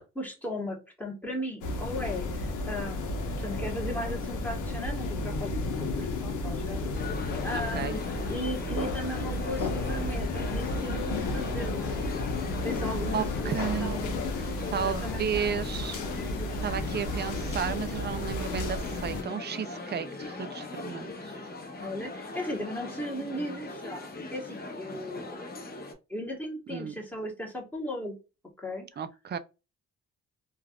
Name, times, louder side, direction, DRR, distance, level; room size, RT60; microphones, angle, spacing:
voice 1, 0.1-6.9 7.4-8.0 8.3-11.9 12.6-13.5 13.8-15.2 21.8-25.5 26.1-28.1 28.6-29.0, left 1 dB, 5° left, 1.1 m, -37 dB
sound 1, 1.6-19.2, left 2 dB, 80° left, 0.8 m, -32 dB
sound 2, 6.9-25.9, left 2 dB, 30° left, 0.8 m, -40 dB
voice 2, 7.5-8.0 13.1-14.0 14.7-16.0 16.6-21.4 26.7-26.9 29.0-29.4, right 8 dB, 35° right, 0.4 m, -33 dB
3.3 x 2.3 x 2.3 m
cardioid pair, 90°, 30 cm